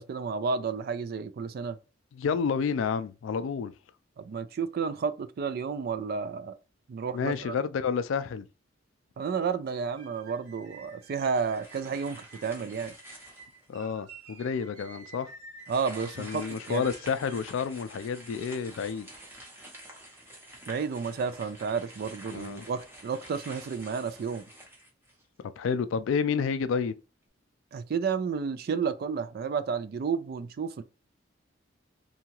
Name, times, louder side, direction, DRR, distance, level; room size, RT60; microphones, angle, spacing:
voice 1, 0.0-1.8 4.2-6.6 6.9-7.6 9.2-12.9 15.7-16.9 20.7-24.4 27.7-30.8, right 5 dB, 50° right, 0.3 m, -31 dB
voice 2, 2.1-3.7 7.1-8.5 13.7-15.3 16.2-19.1 22.3-22.7 25.4-26.9, left 6 dB, 80° left, 0.3 m, -30 dB
sound 1, 9.7-17.5, right 4 dB, 85° right, 1.1 m, -51 dB
sound 2, 11.1-13.7 14.2-14.3 15.6-25.4, right 1 dB, 10° right, 0.8 m, -48 dB
2.7 x 2.3 x 2.8 m
head